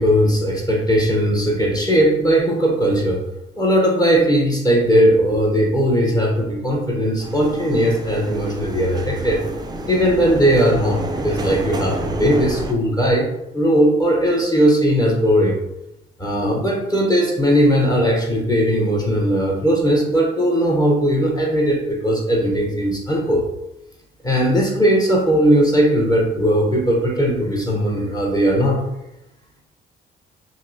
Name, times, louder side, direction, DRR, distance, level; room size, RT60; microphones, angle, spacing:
voice 1, 0.0-3.2 3.6-9.4 9.9-13.3 13.5-15.5 16.2-23.4 24.2-28.8, equal, 20° left, -1 dB, 0.8 m, -18 dB
sound 1, 7.2-12.7, right 2 dB, 20° right, 0.4 m, -29 dB
5.1 x 2.0 x 2.7 m, 0.86 s
cardioid pair, 90°, 20 cm